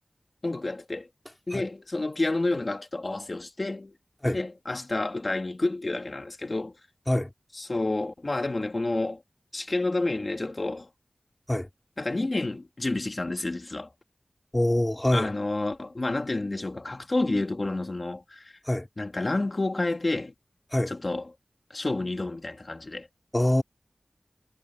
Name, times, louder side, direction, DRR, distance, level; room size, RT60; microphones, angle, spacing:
voice 1, 0.4-1.1 1.5-4.0 4.3-6.7 7.5-9.2 9.5-10.9 12.0-13.9 15.1-18.5 19.0-20.3 20.9-21.3 21.7-23.1, left 2 dB, 45° left, 3.0 m, -29 dB
voice 2, 14.5-15.3 18.7-18.9 20.7-20.9 23.3-23.6, left 1 dB, 20° left, 4.5 m, -24 dB
wide cardioid pair, 55°, 0 cm